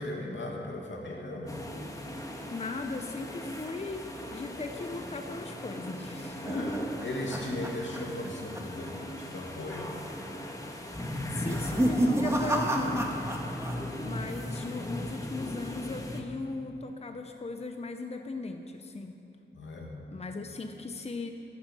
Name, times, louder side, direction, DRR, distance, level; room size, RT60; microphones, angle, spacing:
voice 1, 0.0-1.6 6.4-6.7 7.0-9.9 19.5-19.9, left 1 dB, 85° left, 0 dB, 2.4 m, -37 dB
sound 1, 1.5-16.2, left 1 dB, 15° left, 1.6 m, -38 dB
voice 2, 2.5-6.9 11.3-13.2 14.0-19.2 20.1-21.3, left 3 dB, 35° left, 5 dB, 0.8 m, -38 dB
sound 2, 5.8-8.3 8.5-8.9 9.2-9.3 10.1-10.5 11.3-13.8 14.0-14.6, right 1 dB, 15° right, 1.7 m, -30 dB
13.0 x 12.0 x 7.6 m, 2.8 s
wide cardioid pair, 110°, 19 cm